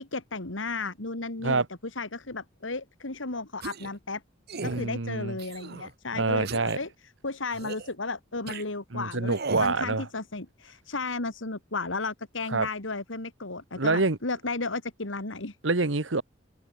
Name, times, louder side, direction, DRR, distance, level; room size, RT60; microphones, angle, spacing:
voice 1, 0.0-4.2 4.6-6.9 7.2-15.6, left 3 dB, 80° left, 2.5 m, -34 dB
sound 1, 3.6-4.0 4.5-4.9 5.4-5.9 6.5-6.8 7.5-7.9 8.5-8.6 9.3-9.8, right 4 dB, 55° right, 1.3 m, -37 dB
voice 2, 4.6-5.3 6.1-6.8 8.9-10.0 12.5-12.7 13.8-14.2 15.6-16.2, right 3 dB, 75° right, 1.4 m, -26 dB
head